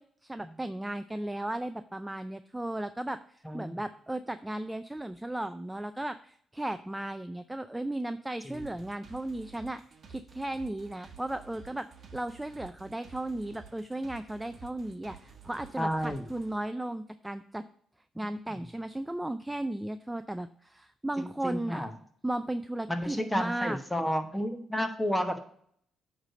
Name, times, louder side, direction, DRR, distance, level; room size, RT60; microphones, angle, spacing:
voice 1, 0.0-9.8 10.1-11.9 12.1-17.6 18.2-21.8 22.2-23.8, right 1 dB, 10° right, 10 dB, 0.4 m, -35 dB
voice 2, 3.4-3.8 8.4-8.7 15.8-16.2 18.1-18.6 21.2-21.9 22.9-25.4, equal, 5° left, 6 dB, 1.1 m, -32 dB
sound 1, 8.5-16.5, right 6 dB, 50° right, 1.2 m, -51 dB
8.8 x 3.3 x 6.6 m, 0.62 s
cardioid pair, 90°, 0 cm